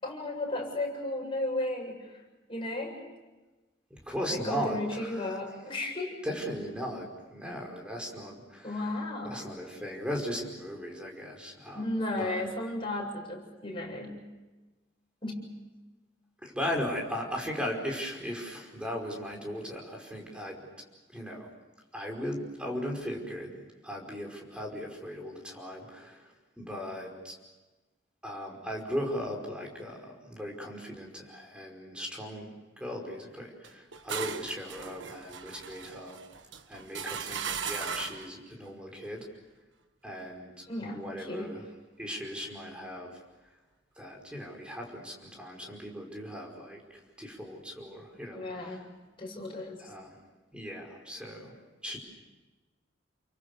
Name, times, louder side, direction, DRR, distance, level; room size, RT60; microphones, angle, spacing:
voice 1, 0.0-2.1 2.5-3.0 4.3-6.2 8.6-9.4 11.7-14.2 15.2-15.5 40.7-41.5 48.3-48.8 49.2-49.8, left 1 dB, 30° left, -1 dB, 7.7 m, -34 dB
voice 2, 3.9-5.2 6.2-8.9 9.2-11.9 12.2-12.4 16.4-20.6 21.1-21.5 21.9-27.4 28.2-36.2 36.7-39.3 40.0-41.6 42.0-43.1 44.0-48.8 49.8-50.2 50.5-52.0, equal, 5° right, 1 dB, 5.2 m, -38 dB
sound 1, 33.6-38.3, right 7 dB, 75° right, 1.4 m, -38 dB
29.5 x 24.0 x 6.9 m, 1.2 s
head